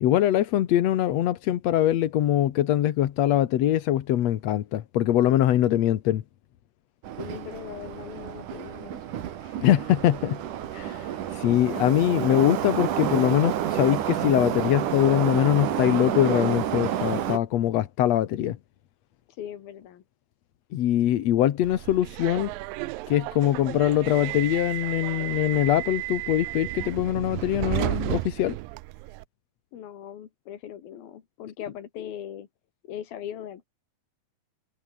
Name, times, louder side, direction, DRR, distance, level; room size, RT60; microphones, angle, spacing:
voice 1, 0.0-6.2 9.6-10.4 10.7-18.6 20.7-22.5 23.1-28.6, left 12 dB, 65° left, 1.9 m, -23 dB
Subway metro underground, 7.0-17.4, right 11 dB, 65° right, 3.0 m, -29 dB
voice 2, 7.1-9.1 9.4-9.6 19.3-20.0 22.8-22.9 29.7-32.5 32.9-33.7, left 10 dB, 85° left, 3.9 m, -39 dB
Subway metro underground 2, 21.6-29.2, right 20 dB, 85° right, 2.3 m, -33 dB
omnidirectional pair, 4.1 m